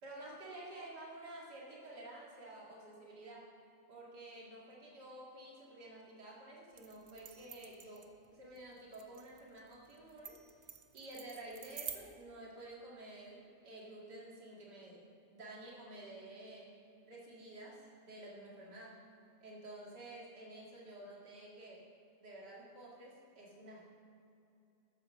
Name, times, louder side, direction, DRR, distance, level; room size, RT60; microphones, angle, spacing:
voice 1, 0.0-3.5 3.9-10.4 10.9-15.0 15.3-16.7 17.0-19.0 19.4-21.8 22.2-23.9, right 1 dB, 90° right, -4 dB, 2.8 m, -51 dB
sound 1, 6.8-12.0, right 8 dB, 55° right, 0.8 m, -50 dB
9.5 x 7.9 x 6.5 m, 2.6 s
omnidirectional pair, 1.8 m